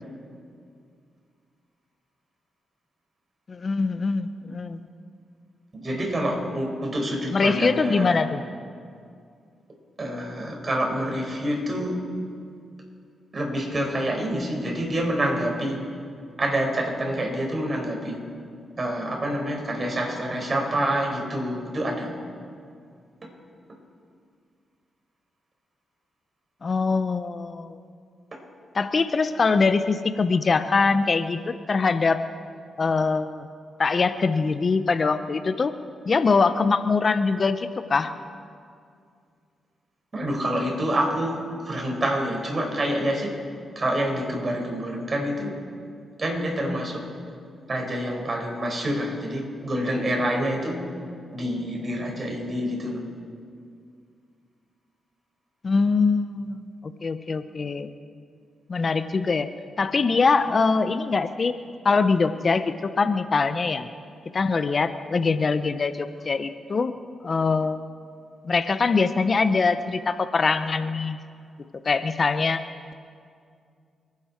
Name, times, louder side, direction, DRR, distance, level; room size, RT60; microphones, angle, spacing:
voice 1, 3.5-4.8 7.3-8.4 26.6-27.8 28.7-32.2 32.8-33.5 33.8-35.7 36.0-38.1 55.6-57.9 58.7-59.5 59.8-61.5 61.8-63.9 64.3-66.9 67.2-67.8 68.4-71.2 71.8-72.6, left 4 dB, 50° left, 11 dB, 0.9 m, -23 dB
voice 2, 5.8-8.2 10.0-11.9 13.3-15.8 16.4-18.2 18.8-22.1 40.1-41.4 41.6-43.3 43.8-45.5 46.2-47.0 47.7-50.8 51.3-53.0, right 1 dB, 45° right, 0 dB, 5.5 m, -27 dB
29.5 x 11.0 x 4.6 m, 2.3 s
supercardioid pair, 50°, 0 cm